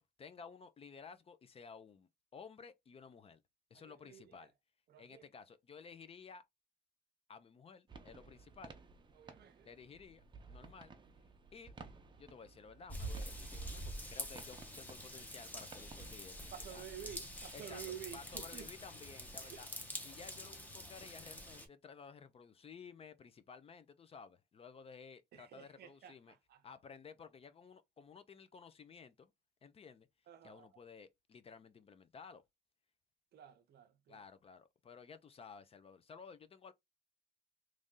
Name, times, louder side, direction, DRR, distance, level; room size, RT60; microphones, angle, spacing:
voice 1, 0.0-3.4 3.7-4.5 5.0-6.4 7.3-8.7 9.6-10.9 11.5-11.7 12.2-16.9 17.5-17.8 18.1-19.7 20.0-26.4 26.6-29.3 29.6-30.1 30.4-32.4 34.1-36.7, left 5 dB, 30° left, 0.4 m, -55 dB
voice 2, 3.7-4.5 4.9-5.3 9.1-9.7 16.5-18.7 19.4-19.6 25.3-26.6 30.3-30.7 33.3-34.2, right 9 dB, 65° right, 0.6 m, -51 dB
sound 1, 7.9-16.2, right 4 dB, 25° right, 0.6 m, -57 dB
Raindrop / Vehicle horn car horn honking / Trickle dribble, 12.9-21.7, equal, 10° left, 0.9 m, -46 dB
3.1 x 2.6 x 3.6 m
cardioid pair, 135°, 18 cm